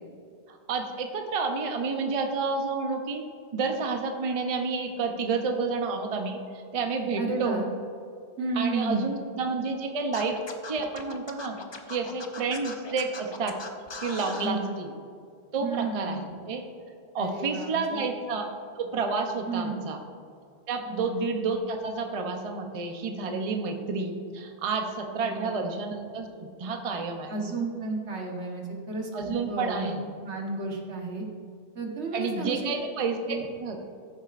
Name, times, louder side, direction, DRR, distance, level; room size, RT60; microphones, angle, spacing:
voice 1, 0.5-3.2 3.5-7.7 8.5-10.4 10.7-11.6 11.9-13.6 14.0-14.9 15.5-16.6 17.1-18.5 18.8-20.0 20.7-27.3 29.1-30.0 32.1-33.8, right 4 dB, 35° right, 4 dB, 0.7 m, -30 dB
voice 2, 7.2-7.7 8.4-9.1 14.4-14.8 15.6-16.3 17.2-18.0 19.5-19.9 20.9-21.1 25.2-25.6 27.3-30.0 30.2-31.2 31.7-32.7 33.3-33.4, right 3 dB, 80° right, 0 dB, 1.5 m, -32 dB
Scratching (performance technique), 10.1-14.5, left 4 dB, 35° left, 0.5 m, -40 dB
14.0 x 7.3 x 2.5 m, 2.3 s
omnidirectional pair, 1.1 m